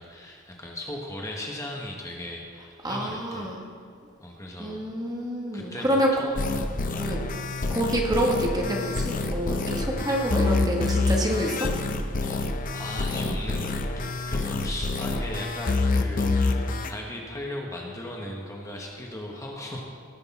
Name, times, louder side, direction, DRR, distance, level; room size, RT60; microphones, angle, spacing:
voice 1, 0.0-3.5 4.2-4.9 5.5-6.4 6.9-7.1 12.2-16.6 16.9-19.8, left 1 dB, 15° left, -1 dB, 1.1 m, -37 dB
voice 2, 2.8-3.6 4.6-6.1 7.0-7.2 7.7-11.7, equal, 20° right, -1 dB, 1.4 m, -27 dB
sound 1, 6.4-16.9, left 3 dB, 40° left, 0.6 m, -27 dB
18.0 x 6.4 x 4.1 m, 2.3 s
head